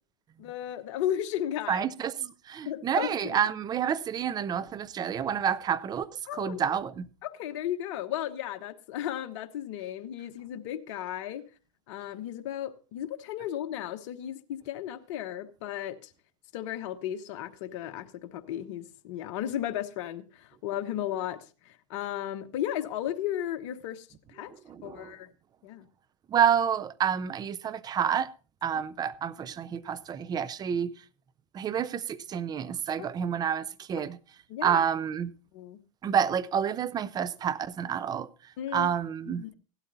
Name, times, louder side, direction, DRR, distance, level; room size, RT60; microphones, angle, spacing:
voice 1, 0.4-1.9 2.6-3.5 6.3-6.8 7.2-11.5 11.9-16.1 16.5-24.1 24.3-24.5 24.8-25.3 25.6-25.9 28.7-28.8 34.0-34.1 34.5-34.8 35.5-35.8 38.6-38.9 39.3-39.5, left 11 dB, 60° left, 1.1 m, -35 dB
voice 2, 1.7-6.1 6.3-7.1 24.7-25.1 26.3-28.3 28.6-30.9 31.5-34.2 34.6-35.3 36.0-38.3 38.7-39.4, right 8 dB, 25° right, 0.6 m, -29 dB
16.5 x 12.0 x 2.7 m
hypercardioid pair, 115°, 18 cm